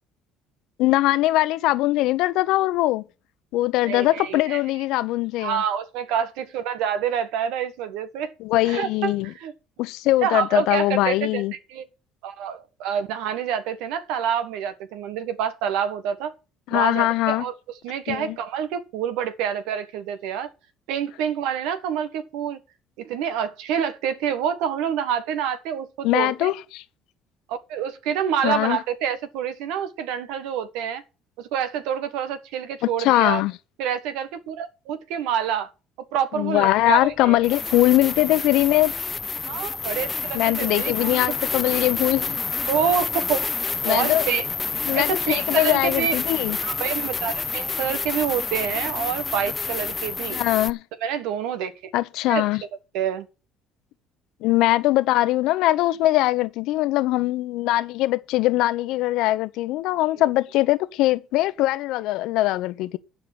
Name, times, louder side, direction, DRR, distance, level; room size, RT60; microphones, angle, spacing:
voice 1, 0.8-3.0 3.5-5.6 8.4-9.3 9.8-11.5 16.7-17.5 18.1-18.4 26.0-26.8 28.4-28.8 32.8-33.5 36.4-38.9 40.3-42.4 43.8-44.3 44.9-46.6 50.3-50.8 51.9-52.6 54.4-63.0, left 17 dB, 75° left, 0.9 m, -21 dB
voice 2, 3.9-4.6 5.4-8.3 8.6-9.5 10.2-11.8 12.2-16.3 16.7-17.5 17.8-20.5 20.9-22.6 23.0-26.5 27.5-31.0 31.4-33.4 33.8-35.7 36.1-37.4 39.4-41.2 42.7-43.5 43.9-44.5 44.9-46.2 46.6-50.4 51.0-51.9 52.3-52.7 52.9-53.3, right 8 dB, 80° right, 1.4 m, -27 dB
sound 1, 36.7-36.8 37.4-50.7, left 4 dB, 25° left, 0.7 m, -28 dB
11.5 x 4.8 x 8.2 m
supercardioid pair, 75°, 0 cm